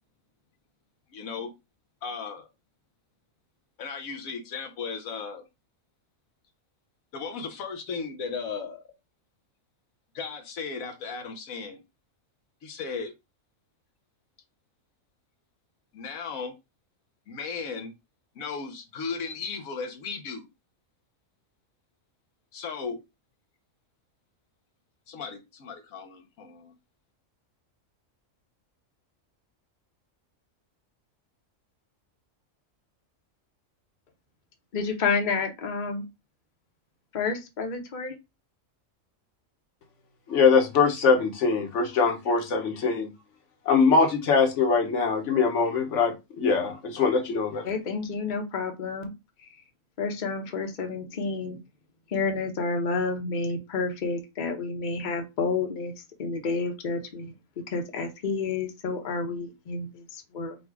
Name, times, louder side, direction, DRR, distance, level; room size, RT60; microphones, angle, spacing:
voice 1, 1.1-1.5 2.0-2.5 3.8-5.4 7.1-8.9 10.1-11.8 12.6-13.1 15.9-16.5 17.3-17.9 18.4-20.5 22.5-23.0 25.1-26.7, left 5 dB, 85° left, 1.3 m, -36 dB
voice 2, 34.7-36.0 37.1-38.1 47.7-49.1 49.4-49.5 50.0-51.6 52.1-55.9 56.2-57.3 57.7-60.6, left 4 dB, 40° left, 0.9 m, -30 dB
voice 3, 40.3-43.1 43.7-47.7, left 5 dB, 65° left, 1.2 m, -22 dB
4.0 x 2.3 x 4.6 m
omnidirectional pair, 1.4 m